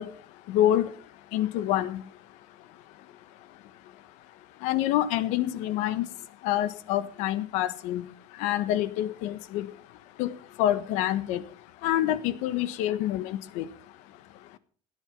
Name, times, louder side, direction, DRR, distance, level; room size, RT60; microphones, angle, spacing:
voice 1, 0.0-14.6, left 12 dB, 75° left, 1.3 m, -29 dB
17.0 x 11.0 x 5.3 m
cardioid pair, 175°, 12 cm